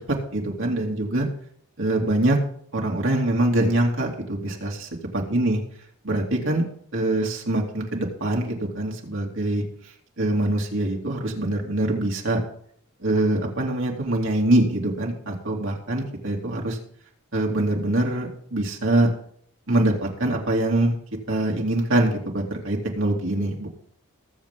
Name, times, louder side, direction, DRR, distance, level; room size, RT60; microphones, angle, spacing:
voice 1, 0.3-1.3 1.8-2.4 2.7-5.6 6.0-6.6 6.9-9.6 10.2-12.4 13.0-16.8 17.3-19.1 19.7-20.9 21.3-23.7, right 1 dB, 60° right, 0 dB, 2.8 m, -24 dB
20.5 x 7.5 x 3.7 m, 0.64 s
head